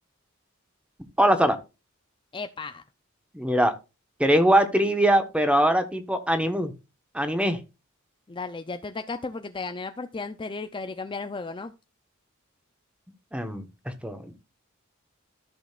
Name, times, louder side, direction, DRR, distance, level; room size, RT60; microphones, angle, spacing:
voice 1, 1.2-1.6 3.3-3.7 4.2-6.7 7.1-7.6 13.3-13.6 14.0-14.3, right 1 dB, 5° right, 7 dB, 1.2 m, -22 dB
voice 2, 2.3-2.8 8.3-11.7, left 3 dB, 25° left, 8 dB, 0.5 m, -34 dB
14.0 x 6.3 x 2.4 m, 0.27 s
head